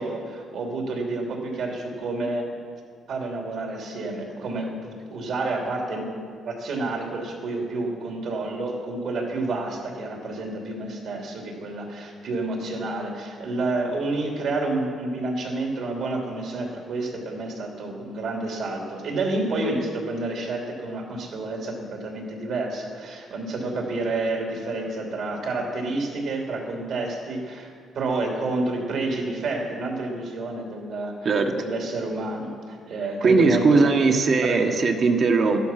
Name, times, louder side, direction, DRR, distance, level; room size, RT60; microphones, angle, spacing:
voice 1, 0.0-2.5 3.1-6.1 6.4-27.7 27.9-34.0 34.4-34.8, right 2 dB, 70° right, 0 dB, 3.0 m, -29 dB
voice 2, 33.2-35.6, right 4 dB, 50° right, 3 dB, 1.4 m, -19 dB
12.5 x 12.0 x 5.9 m, 2.1 s
cardioid pair, 90°, 0 cm